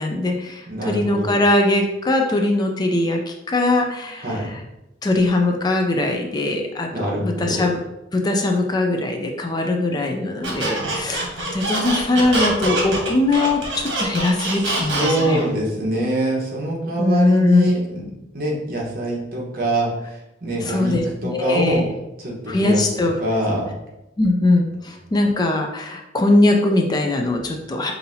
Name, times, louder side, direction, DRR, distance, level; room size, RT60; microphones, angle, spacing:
voice 1, 0.0-4.6 5.0-7.8 8.1-15.4 17.0-17.7 20.6-21.0 21.3-21.8 22.5-23.2 24.2-27.9, left 2 dB, 20° left, 3 dB, 0.3 m, -21 dB
voice 2, 0.7-1.4 4.2-4.5 6.9-7.7 14.5-21.8 22.2-23.7, right 1 dB, 50° right, -3 dB, 1.2 m, -24 dB
Squeak, 10.4-15.5, right 2 dB, 70° right, 1.2 m, -25 dB
5.5 x 2.7 x 2.7 m, 0.94 s
head